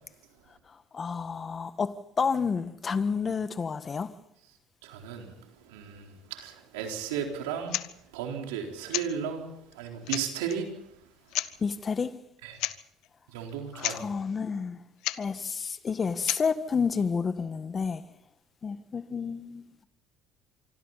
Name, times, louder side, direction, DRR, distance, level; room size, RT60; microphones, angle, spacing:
voice 1, 0.9-4.1 11.6-12.1 13.7-14.8 15.2-18.0 18.6-19.8, left 5 dB, 35° left, 1.5 m, -30 dB
voice 2, 4.8-5.3 5.7-7.8 8.1-9.5 9.8-10.7 12.4-12.6 13.3-14.0, right 8 dB, 90° right, 4.0 m, -34 dB
sound 1, 7.7-7.9 8.9-9.1 9.7-9.8 10.1-10.6 11.3-11.5 12.6-12.8 13.0-13.1 13.5-13.6 13.8-14.0 15.0-15.2 16.2-16.4, left 16 dB, 75° left, 0.9 m, -31 dB
25.5 x 25.5 x 4.2 m
supercardioid pair, 75°, 0 cm